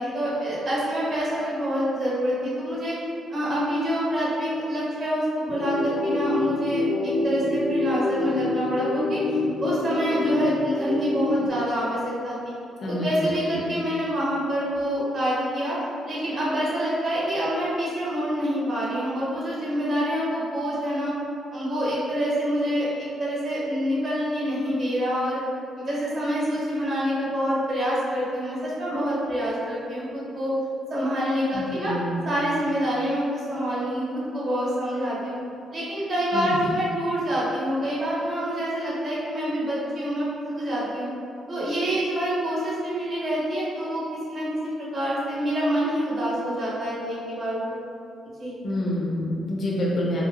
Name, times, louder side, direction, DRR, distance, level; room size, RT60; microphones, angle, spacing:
voice 1, 0.0-2.9 3.3-6.8 7.2-12.5 12.9-15.8 16.1-21.1 21.5-22.9 23.2-25.4 25.8-30.5 30.9-31.9 32.2-35.4 35.7-41.1 41.5-47.6 48.4-48.6, equal, 45° right, -7 dB, 1.3 m, -26 dB
sound 1, 5.5-11.5, left 2 dB, 30° left, 0.3 m, -26 dB
voice 2, 31.5-32.2 36.3-36.7 48.6-50.3, left 1 dB, 55° left, -4 dB, 0.8 m, -27 dB
4.2 x 2.4 x 2.6 m, 2.4 s
cardioid pair, 90°, 0 cm